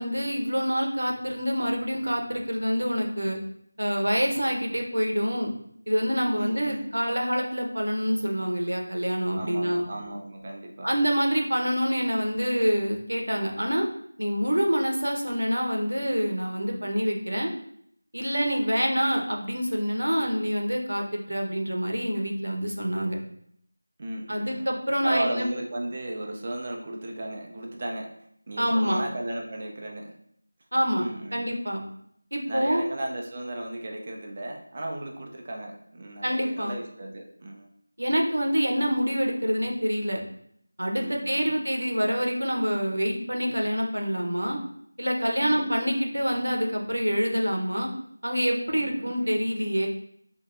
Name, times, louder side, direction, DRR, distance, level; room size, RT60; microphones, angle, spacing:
voice 1, 0.0-3.4 3.8-5.5 5.9-9.8 10.8-13.9 14.2-17.5 18.1-23.2 24.3-25.5 28.6-29.0 30.7-31.1 31.3-31.8 32.3-32.8 36.2-36.8 38.0-40.2 40.8-44.6 45.0-47.9 48.2-49.9, equal, 85° right, 2 dB, 0.9 m, -26 dB
voice 2, 6.4-6.9 9.3-10.9 24.0-24.7 25.0-28.1 28.5-30.1 31.0-31.5 32.5-37.7 41.0-41.6 45.4-45.7 48.7-49.4, right 1 dB, 30° right, 1 dB, 0.5 m, -35 dB
5.6 x 2.6 x 2.5 m, 0.69 s
figure-of-eight pair, 170°, 0 cm